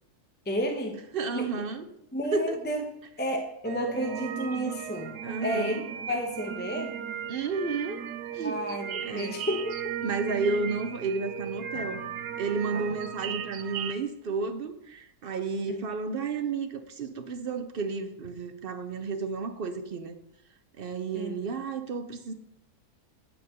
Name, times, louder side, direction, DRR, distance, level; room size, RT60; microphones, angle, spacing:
voice 1, 0.4-1.0 1.3-1.5 2.1-2.8 3.2-5.1 5.4-5.8 6.1-6.9 8.4-9.7 12.7-12.9 15.7-15.8 21.1-21.4, equal, 10° left, 0.6 m, -31 dB
voice 2, 1.1-1.9 2.3-2.6 5.2-5.8 7.3-8.0 8.3-8.6 8.9-9.4 10.0-12.0 12.4-20.2 20.8-22.3, right 4 dB, 55° right, 0.6 m, -32 dB
sound 1, 3.6-13.9, right 9 dB, 90° right, 1.2 m, -36 dB
Drum, 11.7-13.7, left 3 dB, 85° left, 1.8 m, -52 dB
8.9 x 4.5 x 6.6 m
omnidirectional pair, 1.7 m